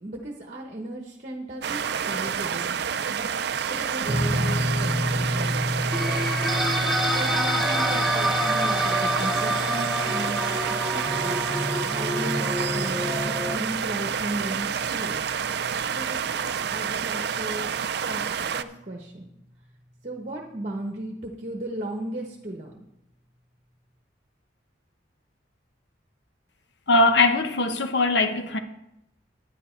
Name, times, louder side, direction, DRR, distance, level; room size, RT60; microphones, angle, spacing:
voice 1, 0.0-3.3 3.6-5.8 7.1-15.2 15.9-17.7 18.1-18.2 18.5-19.3 20.0-22.8, right 1 dB, 40° right, 1.1 m, -36 dB
sound 1, 1.6-18.6, right 7 dB, 60° right, 0.4 m, -28 dB
sound 2, 4.0-16.6, equal, 40° left, 2.5 m, -32 dB
sound 3, 5.9-13.6, equal, ahead, 0.5 m, -27 dB
voice 2, 26.9-28.6, left 2 dB, 65° left, 1.0 m, -21 dB
10.0 x 9.7 x 4.5 m
head